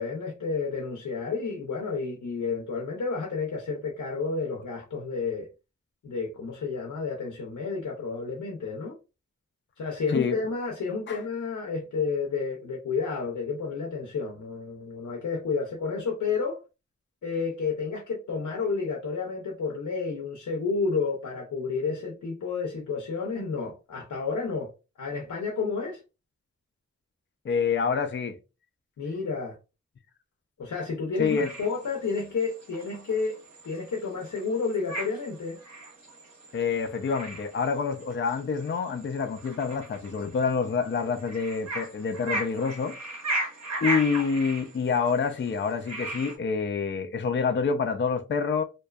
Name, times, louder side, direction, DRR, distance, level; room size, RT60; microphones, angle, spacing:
voice 1, 0.0-5.5 6.0-9.0 9.8-16.6 17.2-24.7 25.0-26.0 29.0-29.6 30.6-33.4 33.6-35.6, left 4 dB, 85° left, 0.6 m, -31 dB
voice 2, 27.4-28.4 31.2-31.5 36.5-42.9 43.8-48.6, left 5 dB, 40° left, 0.4 m, -27 dB
sound 1, 31.3-46.4, right 1 dB, 60° right, 1.0 m, -37 dB
2.6 x 2.2 x 2.2 m
cardioid pair, 45°, 29 cm